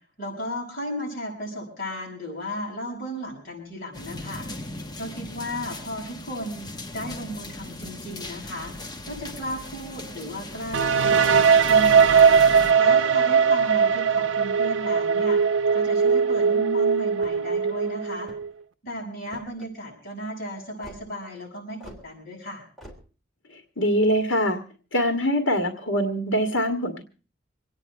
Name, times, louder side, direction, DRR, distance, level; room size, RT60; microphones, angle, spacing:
voice 1, 0.2-4.5 5.0-8.7 9.1-12.3 12.8-15.4 15.7-18.3 18.8-22.6, equal, 50° left, -1 dB, 7.3 m, -35 dB
sound 1, 3.9-12.7, left 1 dB, 20° left, 1.1 m, -38 dB
sound 2, 10.7-18.5, right 6 dB, 75° right, 0.7 m, -19 dB
sound 3, 17.1-17.6 18.2-18.6 19.3-19.7 20.8-21.0 21.8-22.0 22.8-23.0, equal, ahead, 3.5 m, -45 dB
voice 2, 23.5-24.6 24.9-27.0, equal, 90° left, 4 dB, 1.9 m, -23 dB
26.5 x 9.7 x 4.4 m, 0.38 s
head